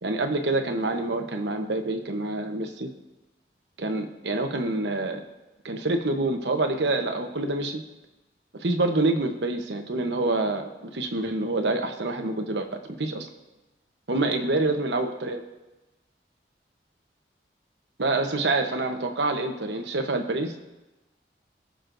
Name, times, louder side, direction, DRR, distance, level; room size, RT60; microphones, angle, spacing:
voice 1, 0.0-2.9 3.8-5.2 5.6-7.8 8.6-13.3 14.1-15.4 18.0-20.5, right 2 dB, 85° right, 5 dB, 1.0 m, -27 dB
19.0 x 6.5 x 2.6 m, 1.0 s
head